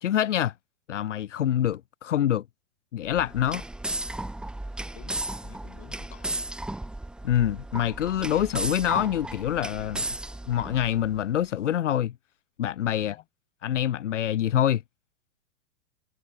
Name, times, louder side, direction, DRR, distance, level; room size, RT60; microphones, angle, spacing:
voice 1, 0.0-0.5 0.9-2.4 2.9-3.6 7.2-10.1 10.5-12.1 12.6-13.2 13.6-14.8, left 11 dB, 85° left, 0.7 m, -25 dB
sound 1, 3.0-11.2, right 1 dB, ahead, 0.7 m, -35 dB
voice 2, 4.9-6.4 13.0-13.2, left 22 dB, 35° left, 2.4 m, -51 dB
hypercardioid pair, 115°, 36 cm